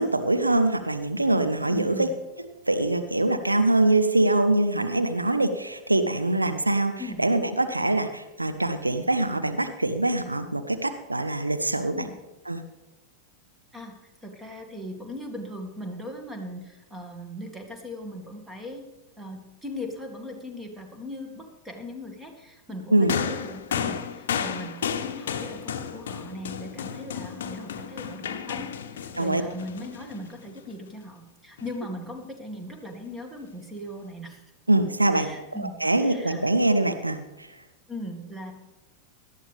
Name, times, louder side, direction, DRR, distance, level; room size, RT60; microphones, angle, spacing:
voice 1, 0.0-2.1 2.7-6.9 7.2-12.1 12.5-12.6 22.9-23.2 29.2-29.4 34.7-35.3 35.6-37.5, right 2 dB, 85° right, 9 dB, 0.8 m, -23 dB
voice 2, 1.7-2.1 7.0-7.2 11.9-12.2 13.7-18.8 19.2-34.4 35.1-36.4 37.9-38.5, left 1 dB, 10° right, 4 dB, 2.2 m, -39 dB
sound 1, 23.1-30.6 31.6-31.7, left 7 dB, 60° left, 0.9 m, -33 dB
18.0 x 12.0 x 3.5 m, 1.0 s
figure-of-eight pair, 90°, 0 cm